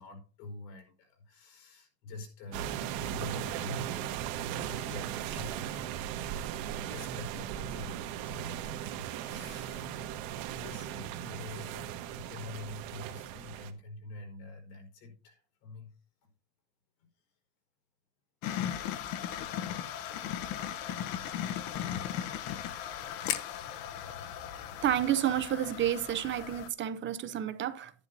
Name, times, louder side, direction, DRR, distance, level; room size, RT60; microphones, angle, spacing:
voice 1, 0.0-10.1 10.3-16.0, left 2 dB, 75° left, 4.6 m, -47 dB
sound 1, 2.5-13.7, right 10 dB, 80° right, 1.4 m, -37 dB
sound 2, 18.4-26.7, left 10 dB, 60° left, 0.9 m, -37 dB
voice 2, 24.8-27.9, right 11 dB, 30° right, 0.7 m, -30 dB
12.0 x 10.5 x 2.7 m
cardioid pair, 155°, 39 cm